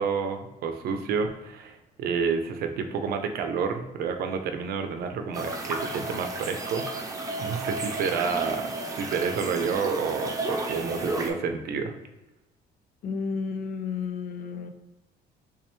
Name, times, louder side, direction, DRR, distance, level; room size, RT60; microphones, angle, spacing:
voice 1, 0.0-6.9 7.4-8.7 8.9-11.9, right 5 dB, 65° right, 6 dB, 0.6 m, -29 dB
sound 1, 5.3-11.3, right 2 dB, 20° right, 0.7 m, -32 dB
voice 2, 13.0-14.7, left 5 dB, 55° left, 8 dB, 0.5 m, -32 dB
3.3 x 3.2 x 3.0 m, 1.0 s
cardioid pair, 110°, 17 cm